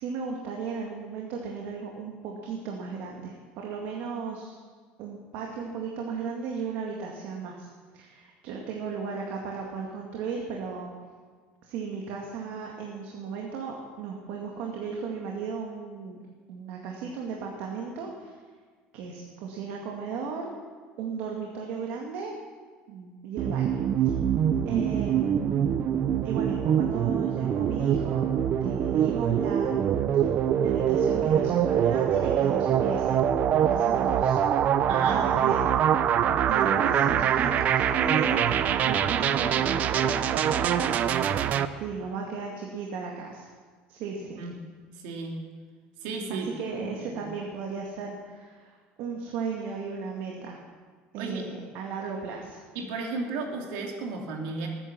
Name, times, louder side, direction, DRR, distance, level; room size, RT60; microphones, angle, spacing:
voice 1, 0.0-4.5 5.0-7.7 7.9-10.9 11.6-16.2 16.5-18.3 18.9-20.5 21.0-22.3 22.9-23.8 24.7-25.7 26.2-28.2 28.6-30.3 30.6-33.2 33.5-34.4 35.1-35.6 36.5-43.5 43.9-44.4 46.3-50.6 51.1-52.6, right 5 dB, 70° right, 0 dB, 2.0 m, -35 dB
sound 1, 23.4-41.7, right 9 dB, 45° right, 0.6 m, -24 dB
voice 2, 34.9-35.3 44.4-44.6 45.0-45.4 46.0-46.5 46.7-47.2 51.2-51.5 52.7-54.7, right 3 dB, 85° right, 1 dB, 2.8 m, -34 dB
21.0 x 10.0 x 6.1 m, 1.6 s
cardioid pair, 150°, 4 cm